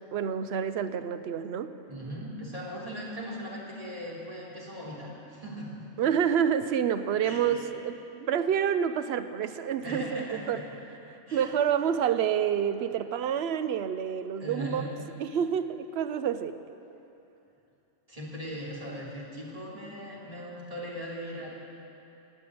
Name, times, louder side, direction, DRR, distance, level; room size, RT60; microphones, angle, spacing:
voice 1, 0.0-1.7 6.0-10.6 11.1-14.9 15.2-16.6, right 8 dB, 60° right, 11 dB, 0.9 m, -28 dB
voice 2, 1.9-5.7 7.2-7.5 9.8-10.6 11.3-11.5 14.4-14.9 18.1-21.5, equal, 30° right, -5 dB, 3.3 m, -39 dB
19.5 x 8.4 x 8.6 m, 2.9 s
omnidirectional pair, 1.3 m